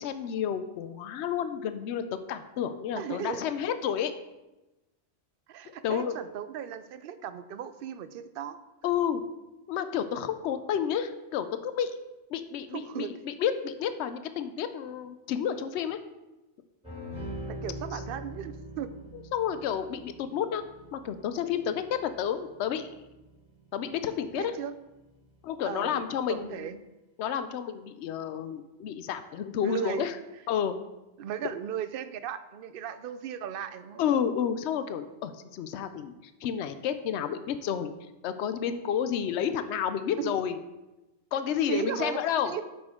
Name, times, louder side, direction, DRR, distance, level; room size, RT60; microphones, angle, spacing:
voice 1, 0.0-2.0 2.3-4.1 5.8-6.1 8.8-9.2 9.7-12.0 12.3-16.0 19.1-20.6 20.9-22.9 23.7-24.6 25.4-26.7 27.2-30.1 30.5-30.8 34.0-36.1 36.4-37.9 38.2-40.6 41.3-42.6, left 8 dB, 70° left, 11 dB, 0.9 m, -30 dB
voice 2, 3.0-3.4 5.5-8.6 12.7-13.1 17.5-18.9 24.4-24.7 25.7-26.0 26.3-26.8 29.6-30.1 31.2-34.0 40.2-40.3 41.4-42.2 42.4-42.6, right 9 dB, 60° right, 12 dB, 0.6 m, -36 dB
sound 1, 16.8-24.5 24.9-25.4, equal, 5° right, 2.3 m, -43 dB
8.5 x 7.0 x 3.6 m, 1.0 s
omnidirectional pair, 1.2 m